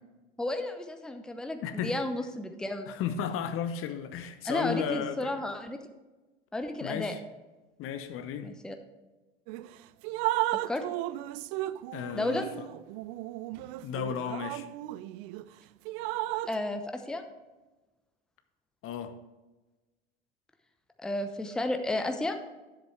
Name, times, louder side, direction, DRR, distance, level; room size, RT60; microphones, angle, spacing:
voice 1, 0.4-2.9 4.4-5.8 6.5-7.1 8.4-8.7 10.7-10.8 12.1-12.4 16.5-17.2 21.0-22.3, left 1 dB, ahead, 6 dB, 0.8 m, -32 dB
voice 2, 1.6-2.0 2.9-5.4 6.8-7.2 7.8-8.5 11.9-12.4 13.8-14.7 18.8-19.2, left 8 dB, 45° left, 9 dB, 0.8 m, -34 dB
Drip, 9.5-9.7 10.0-15.4 15.9-16.6, right 16 dB, 55° right, 0.4 m, -34 dB
10.5 x 7.5 x 3.3 m, 1.1 s
figure-of-eight pair, 70°, 31 cm